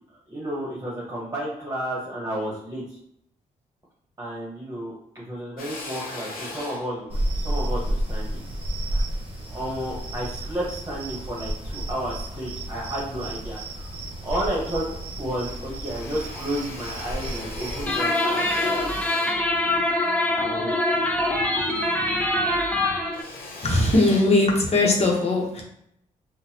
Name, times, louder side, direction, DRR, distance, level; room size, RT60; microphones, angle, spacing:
voice 1, 0.3-3.0 4.2-8.4 8.9-9.0 9.5-13.9 14.2-19.0 20.3-20.9, right 1 dB, 25° right, -6 dB, 1.2 m, -32 dB
Drill, 5.6-10.1 10.7-11.8 12.3-13.2 13.6-13.7 14.0-15.0 15.2-21.9 22.2-25.1, left 2 dB, 85° left, 0.7 m, -40 dB
sound 1, 7.1-18.0, right 1 dB, 40° right, 0.9 m, -31 dB
sound 2, 17.9-23.2, left 1 dB, 10° left, 0.6 m, -24 dB
voice 2, 23.6-25.6, left 2 dB, 45° left, -1 dB, 1.0 m, -20 dB
3.8 x 2.2 x 2.9 m, 0.73 s
supercardioid pair, 55°, 15 cm